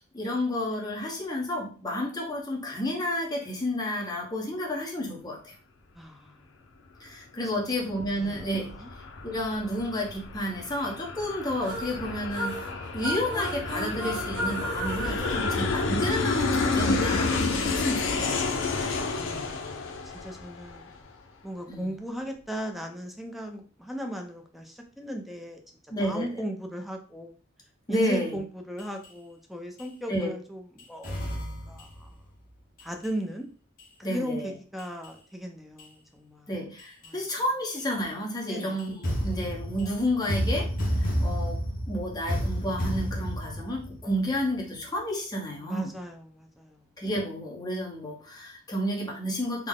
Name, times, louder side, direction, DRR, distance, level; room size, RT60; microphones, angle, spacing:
voice 1, 0.0-5.5 7.0-8.8 9.2-18.5 21.7-21.9 25.9-26.3 27.9-28.4 30.1-30.3 34.0-34.5 36.5-45.9 47.0-49.7, left 1 dB, 20° left, -2 dB, 0.9 m, -31 dB
voice 2, 5.9-6.5 7.5-7.6 8.2-8.9 19.2-20.9 21.4-25.6 26.0-27.3 27.9-32.1 32.8-33.5 34.1-36.5 37.1-37.2 38.4-38.8 45.6-46.9, equal, ahead, 3 dB, 0.5 m, -37 dB
Aircraft, 7.9-21.1, left 3 dB, 70° left, 0.5 m, -30 dB
sound 1, 11.6-16.4, right 1 dB, 75° right, 1.6 m, -35 dB
sound 2, 28.8-29.1 29.8-29.9 30.8-32.1 32.8-33.1 33.8-33.9 34.8-35.1 35.8-35.9 36.8-37.1 37.8-37.9 38.8-44.6, equal, 45° left, 0.9 m, -31 dB
3.7 x 2.1 x 3.6 m, 0.39 s
head